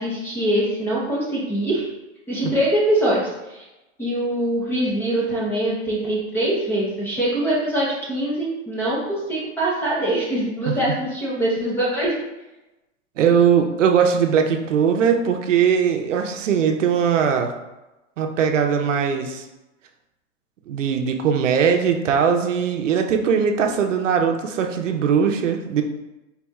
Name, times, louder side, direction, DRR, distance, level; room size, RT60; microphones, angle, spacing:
voice 1, 0.0-1.9 2.3-3.6 4.0-12.1, right 1 dB, 5° left, -6 dB, 0.8 m, -23 dB
voice 2, 13.2-17.5 18.2-19.5 20.7-25.8, right 7 dB, 90° right, 4 dB, 0.7 m, -20 dB
4.2 x 4.1 x 2.3 m, 1.0 s
hypercardioid pair, 155°, 36 cm